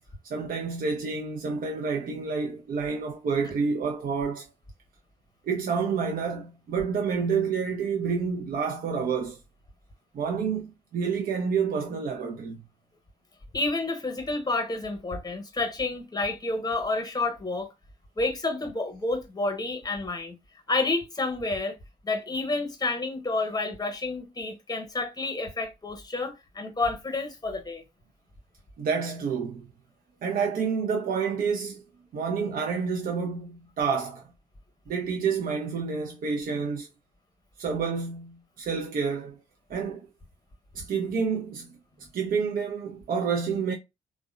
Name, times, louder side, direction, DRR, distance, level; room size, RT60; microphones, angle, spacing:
voice 1, 0.3-4.5 5.5-9.4 10.1-12.6 28.8-29.7 30.2-31.8 32.1-34.2 34.9-36.9 37.6-39.4 39.7-40.1 40.7-41.7 42.1-43.7, right 5 dB, 45° right, 0.5 m, -29 dB
voice 2, 13.5-17.7 18.2-20.4 20.7-21.8 22.0-27.8, left 3 dB, 20° left, 1.0 m, -29 dB
3.5 x 2.2 x 2.3 m
figure-of-eight pair, 40°, 21 cm